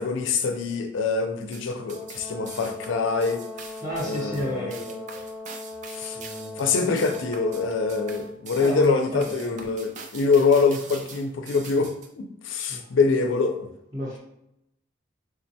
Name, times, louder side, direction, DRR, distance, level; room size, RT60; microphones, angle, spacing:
voice 1, 0.0-3.4 4.0-4.7 5.9-6.2 6.6-13.7, left 4 dB, 75° left, 6 dB, 0.4 m, -24 dB
sound 1, 1.4-12.1, right 5 dB, 40° right, 0.3 m, -43 dB
Brass instrument, 1.9-8.3, left 2 dB, 55° right, 1.3 m, -39 dB
voice 2, 3.8-5.2 6.1-6.7 8.6-9.6 12.7-12.9 13.9-14.2, equal, 20° right, -7 dB, 0.8 m, -32 dB
3.5 x 2.2 x 2.7 m, 0.82 s
head